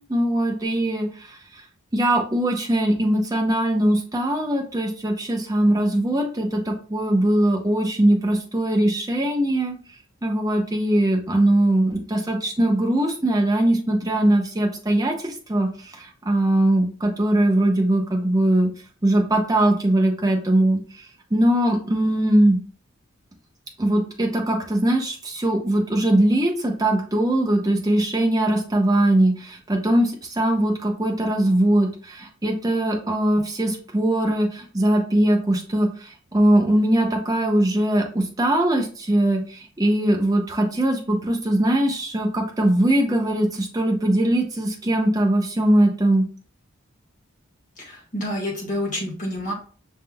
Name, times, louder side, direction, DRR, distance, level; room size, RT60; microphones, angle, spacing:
voice 1, 0.0-1.6 1.9-9.8 10.2-18.7 19.0-20.8 21.3-22.6 23.8-46.3, right 1 dB, 15° right, 2 dB, 0.7 m, -21 dB
voice 2, 47.8-49.5, left 1 dB, 40° left, -1 dB, 1.5 m, -28 dB
5.5 x 3.5 x 2.2 m, 0.41 s
head